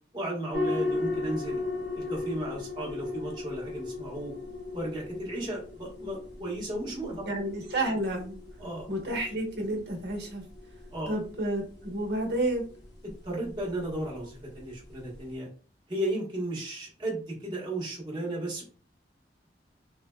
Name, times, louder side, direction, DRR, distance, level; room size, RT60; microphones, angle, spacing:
voice 1, 0.1-1.6 1.9-4.3 4.7-7.2 8.6-8.9 10.9-11.1 13.0-15.5 15.9-18.6, right 1 dB, 25° right, -4 dB, 1.1 m, -34 dB
sound 1, 0.5-15.3, left 3 dB, 70° left, 1.0 m, -38 dB
voice 2, 7.3-8.4 8.9-10.4 11.1-12.6, right 1 dB, 70° right, 0 dB, 1.0 m, -30 dB
3.8 x 2.1 x 2.2 m, 0.40 s
head